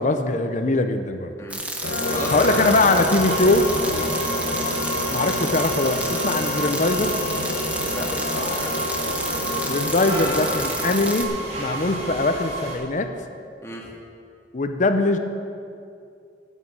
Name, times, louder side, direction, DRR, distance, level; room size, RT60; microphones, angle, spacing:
voice 1, 0.0-1.3 2.3-3.7 5.1-7.1 9.7-11.3 11.6-13.1 14.5-15.2, left 2 dB, 45° left, 7 dB, 0.7 m, -21 dB
sound 1, 1.5-11.3, right 1 dB, 10° right, 1.0 m, -31 dB
sound 2, 1.8-10.6, left 2 dB, 80° left, 1.0 m, -29 dB
sound 3, 2.0-12.8, right 1 dB, 35° right, 2.2 m, -31 dB
voice 2, 2.1-2.7 3.9-4.2 7.9-8.9 13.6-13.9, equal, 15° left, -3 dB, 1.8 m, -33 dB
9.4 x 8.2 x 7.7 m, 2.4 s
head